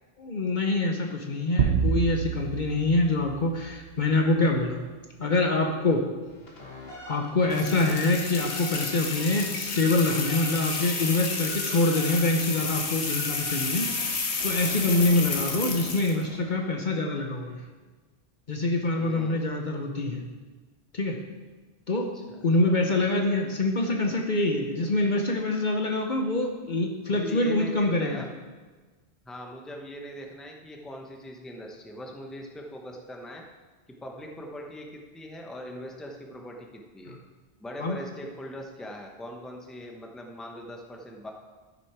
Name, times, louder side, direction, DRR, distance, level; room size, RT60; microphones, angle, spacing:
voice 1, 0.2-4.8 5.2-6.1 7.1-13.9 14.4-17.6 18.5-20.2 20.9-21.2 21.9-22.1 22.4-28.2 37.8-38.0, left 2 dB, 45° left, 2 dB, 0.9 m, -25 dB
sound 1, 1.6-4.2, right 7 dB, 80° right, 0.9 m, -28 dB
sound 2, 6.2-16.8, left 1 dB, 65° left, 1.8 m, -43 dB
sound 3, 7.5-16.2, left 4 dB, 80° left, 1.4 m, -31 dB
voice 2, 19.0-19.5 22.1-22.4 27.1-28.3 29.2-33.4 34.0-37.2 37.6-41.3, equal, ahead, 1 dB, 0.9 m, -41 dB
13.0 x 6.0 x 4.7 m, 1.3 s
omnidirectional pair, 1.1 m